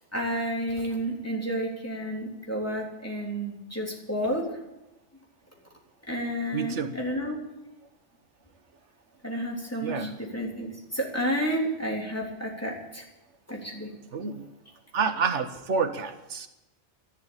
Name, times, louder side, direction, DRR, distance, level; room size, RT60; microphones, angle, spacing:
voice 1, 0.1-4.6 6.1-7.4 9.2-13.1 13.5-13.9, equal, 10° left, -2 dB, 3.6 m, -31 dB
voice 2, 6.5-6.9 9.8-10.2 14.1-14.5 14.9-16.5, right 5 dB, 90° right, 9 dB, 1.4 m, -29 dB
13.0 x 12.0 x 8.9 m, 0.94 s
omnidirectional pair, 1.2 m